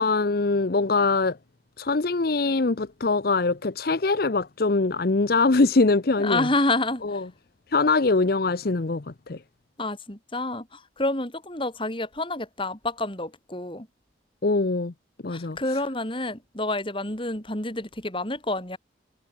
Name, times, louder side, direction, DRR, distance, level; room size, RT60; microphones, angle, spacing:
voice 1, 0.0-1.4 1.8-6.5 7.0-7.3 7.7-9.4 14.4-14.9 15.2-15.6, left 3 dB, 55° left, 0.7 m, -23 dB
voice 2, 6.2-7.2 9.8-13.9 15.3-18.8, left 2 dB, 25° left, 4.7 m, -28 dB
head